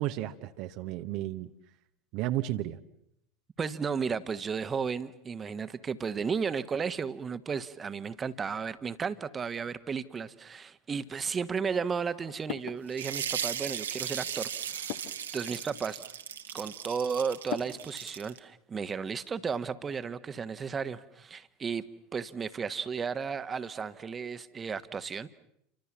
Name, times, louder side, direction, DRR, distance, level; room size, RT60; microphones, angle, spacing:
voice 1, 0.0-1.5 2.1-2.8, right 14 dB, 50° right, 7 dB, 1.1 m, -33 dB
voice 2, 3.6-16.0 16.5-21.8 22.1-25.3, right 6 dB, 25° right, 12 dB, 1.4 m, -34 dB
sound 1, 10.9-18.3, left 12 dB, 55° left, 1.6 m, -46 dB
sound 2, 12.9-18.4, right 8 dB, 75° right, 1.6 m, -37 dB
29.5 x 25.0 x 7.4 m, 0.76 s
figure-of-eight pair, 75°, 0 cm